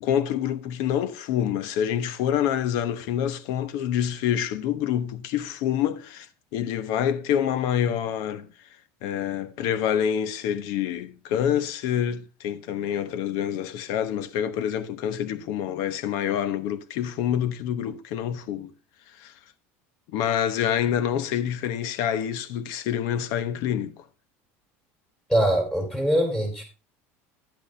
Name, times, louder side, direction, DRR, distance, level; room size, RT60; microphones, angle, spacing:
voice 1, 0.0-6.3 6.5-8.5 9.0-18.7 19.2-19.3 20.1-23.9, left 9 dB, 65° left, 1.0 m, -27 dB
voice 2, 25.3-26.6, right 1 dB, 10° left, 3.8 m, -23 dB
10.5 x 8.2 x 3.3 m
supercardioid pair, 120°, 7 cm